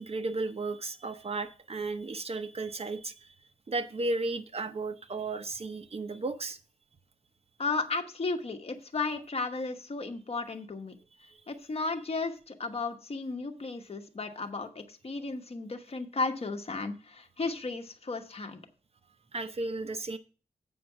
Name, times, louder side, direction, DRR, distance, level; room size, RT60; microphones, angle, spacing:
voice 1, 0.0-3.3 3.7-6.6 11.2-11.4 19.3-20.2, right 3 dB, 45° right, 9 dB, 0.9 m, -34 dB
voice 2, 7.6-11.0 11.5-18.6, left 3 dB, 45° left, 6 dB, 1.1 m, -34 dB
8.1 x 5.1 x 6.0 m, 0.36 s
wide cardioid pair, 115°, 14 cm